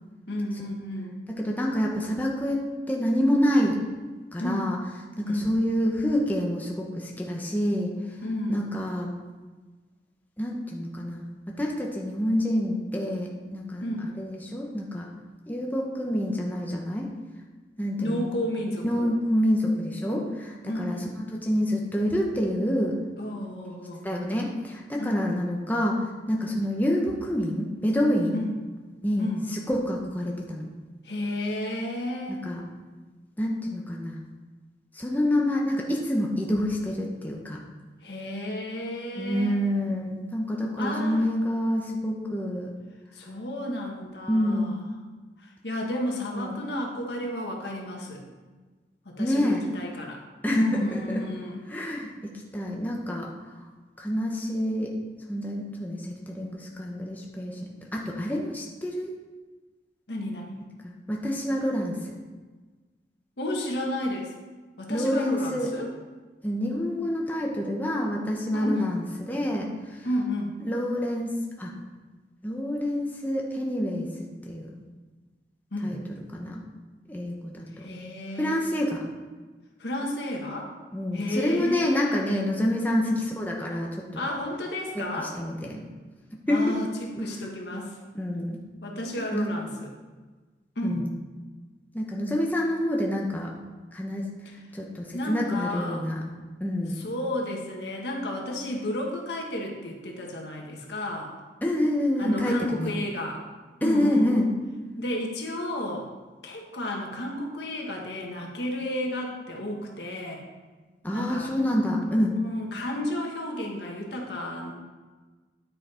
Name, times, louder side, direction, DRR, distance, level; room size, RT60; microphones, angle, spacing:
voice 1, 0.3-1.2 4.4-4.7 5.2-5.5 8.2-8.6 13.8-14.1 18.0-19.1 20.6-21.1 23.2-24.1 25.0-25.3 28.3-28.6 29.2-29.5 31.0-32.5 38.0-39.6 40.8-41.2 43.1-44.8 45.4-48.2 49.0-50.2 50.5-51.6 60.1-60.5 63.4-64.3 64.8-65.9 68.5-69.0 70.0-70.6 75.7-76.0 77.8-78.6 79.8-80.7 81.1-82.2 83.0-83.3 84.1-85.3 86.5-88.0 88.8-89.9 90.7-91.1 95.1-96.1 96.9-101.3 102.2-103.4 103.8-104.4 105.0-106.1 106.4-110.4 111.1-111.5 112.4-114.7, left 1 dB, 80° left, 0 dB, 1.6 m, -32 dB
voice 2, 1.3-3.8 4.3-4.8 5.2-7.9 8.5-9.1 10.4-13.8 14.2-15.1 15.5-17.1 17.8-18.3 18.8-21.0 21.3-23.0 24.0-28.4 29.0-30.7 32.3-32.6 33.4-34.2 35.0-37.6 39.2-42.7 44.3-44.7 46.4-46.6 49.2-49.6 50.4-51.2 51.7-53.3 54.0-54.9 55.3-59.1 60.8-62.2 64.9-65.7 66.4-70.1 70.6-71.7 72.4-74.1 74.5-74.8 75.8-76.0 76.3-76.6 77.1-77.9 78.4-79.0 80.9-83.1 83.4-84.2 84.9-85.8 86.5-86.8 87.2-87.3 88.1-88.6 89.3-89.5 90.8-91.1 91.9-93.5 93.9-94.2 94.7-96.2 96.6-97.0 101.6-103.0 103.8-104.5 111.0-112.4, equal, 10° left, -1 dB, 0.9 m, -27 dB
9.8 x 5.8 x 4.4 m, 1.3 s
head